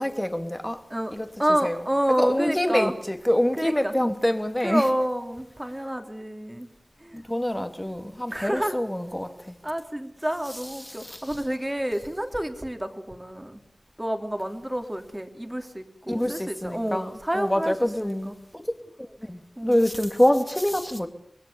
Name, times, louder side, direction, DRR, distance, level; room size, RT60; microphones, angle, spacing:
voice 1, 0.0-0.8 1.1-1.3 1.6-1.8 2.2-4.9 7.1-9.5 10.8-11.3 16.1-21.1, left 1 dB, 15° left, 2.5 m, -26 dB
voice 2, 1.4-2.9 3.6-3.9 4.6-6.7 7.0-7.2 7.6-7.7 8.3-8.8 9.6-13.6 14.0-17.7 18.0-18.4 19.6-19.9, right 1 dB, 15° right, 3.2 m, -29 dB
25.5 x 20.5 x 7.0 m
wide cardioid pair, 50°, 0 cm